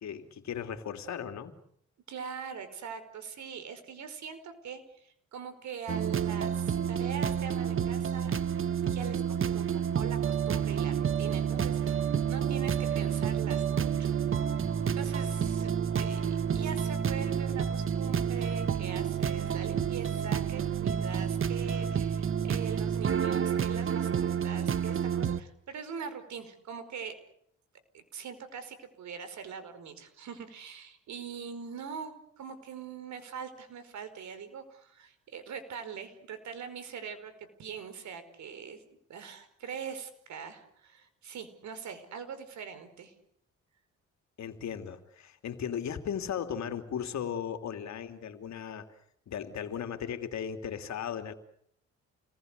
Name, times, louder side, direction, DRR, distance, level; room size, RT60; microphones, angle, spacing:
voice 1, 0.0-1.5 44.4-48.9 49.3-51.3, left 8 dB, 65° left, 7 dB, 3.1 m, -36 dB
voice 2, 2.1-8.3 8.8-9.7 9.9-14.2 14.6-27.1 27.9-38.8 39.1-43.1, right 6 dB, 70° right, 10 dB, 5.2 m, -42 dB
sound 1, 5.9-25.4, right 8 dB, 45° right, 1.3 m, -29 dB
29.5 x 20.5 x 8.3 m, 0.70 s
cardioid pair, 90°, 30 cm